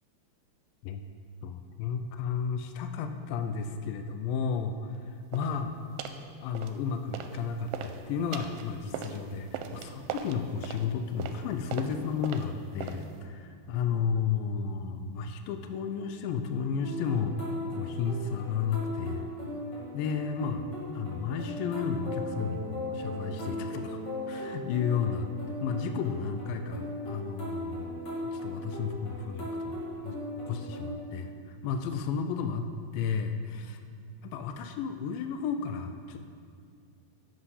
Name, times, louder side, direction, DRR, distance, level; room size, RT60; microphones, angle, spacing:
voice 1, 1.4-5.8 6.4-17.4 17.7-19.3 19.9-20.7 20.9-24.0 24.3-25.3 25.6-33.8 34.2-36.2, left 6 dB, 85° left, 7 dB, 2.2 m, -33 dB
sound 1, 5.3-5.6 6.0-6.2 6.6-7.4 7.7-13.2, right 8 dB, 85° right, 2.2 m, -40 dB
sound 2, 16.8-30.9, left 1 dB, 35° left, 2.4 m, -38 dB
11.0 x 7.9 x 4.1 m, 2.3 s
omnidirectional pair, 4.1 m